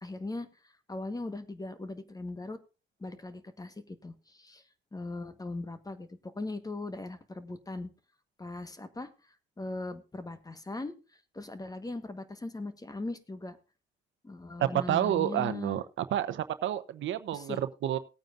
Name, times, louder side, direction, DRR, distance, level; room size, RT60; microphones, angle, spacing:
voice 1, 0.0-0.5 0.9-2.6 3.0-4.6 4.9-7.9 8.4-9.1 9.6-10.9 11.3-13.6 14.2-15.8 17.3-17.6, left 2 dB, 20° left, 11 dB, 1.3 m, -39 dB
voice 2, 14.6-18.0, right 11 dB, 75° right, 11 dB, 0.9 m, -29 dB
18.5 x 9.0 x 2.6 m, 0.31 s
cardioid pair, 90°, 20 cm